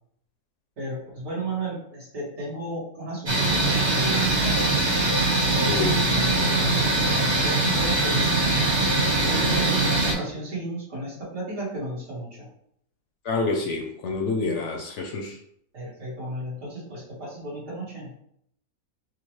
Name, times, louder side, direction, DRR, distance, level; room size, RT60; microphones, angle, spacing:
voice 1, 0.8-4.6 5.5-8.4 9.0-12.5 15.7-18.2, right 1 dB, 65° right, -8 dB, 2.1 m, -33 dB
sound 1, 3.3-10.1, right 2 dB, 40° right, 0.4 m, -22 dB
voice 2, 5.7-6.0 13.2-15.4, left 3 dB, 65° left, 2 dB, 0.8 m, -27 dB
4.9 x 2.1 x 3.0 m, 0.70 s
omnidirectional pair, 1.5 m